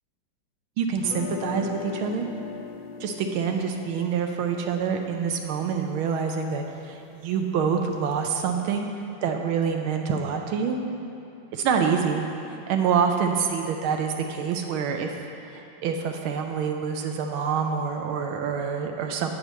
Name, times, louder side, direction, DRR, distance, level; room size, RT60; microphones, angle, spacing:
voice 1, 0.8-2.3 3.0-8.9 9.2-10.8 11.5-12.2 12.7-15.1 15.5-19.3, right 6 dB, 85° right, 4 dB, 1.5 m, -26 dB
sound 1, 1.0-6.9, left 5 dB, 75° left, 1.3 m, -40 dB
8.1 x 4.9 x 7.3 m, 3.0 s
omnidirectional pair, 2.2 m